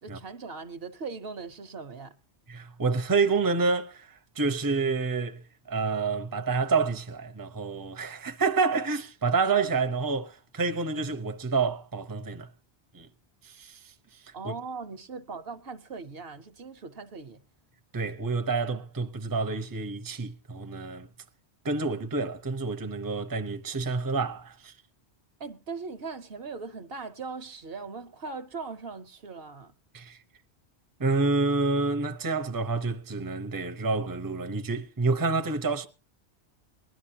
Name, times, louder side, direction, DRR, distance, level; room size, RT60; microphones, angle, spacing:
voice 1, 0.0-2.2 14.3-17.4 25.4-29.7, right 4 dB, 60° right, 1.1 m, -39 dB
voice 2, 2.5-12.5 12.9-13.1 13.4-14.5 17.9-21.1 21.6-24.7 29.9-30.2 31.0-35.9, right 4 dB, 20° right, 0.8 m, -28 dB
21.0 x 11.5 x 2.8 m
omnidirectional pair, 1.1 m